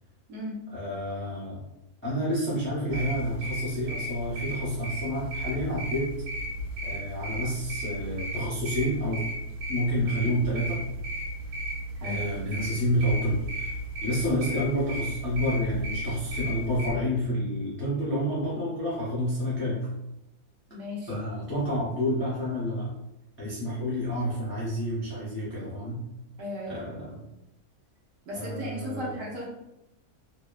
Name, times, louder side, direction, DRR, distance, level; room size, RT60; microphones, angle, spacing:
voice 1, 0.7-1.6 2.0-6.1 6.8-9.3 9.7-10.8 12.0-19.9 21.1-22.9 23.4-26.0 26.7-27.2 28.3-29.2, equal, 15° left, -9 dB, 0.4 m, -29 dB
sound 1, 2.9-16.9, right 1 dB, 80° right, 1.2 m, -34 dB
voice 2, 20.7-21.1 26.4-27.1 28.3-29.4, left 1 dB, 65° right, -4 dB, 0.9 m, -36 dB
2.8 x 2.3 x 2.3 m, 0.88 s
omnidirectional pair, 1.6 m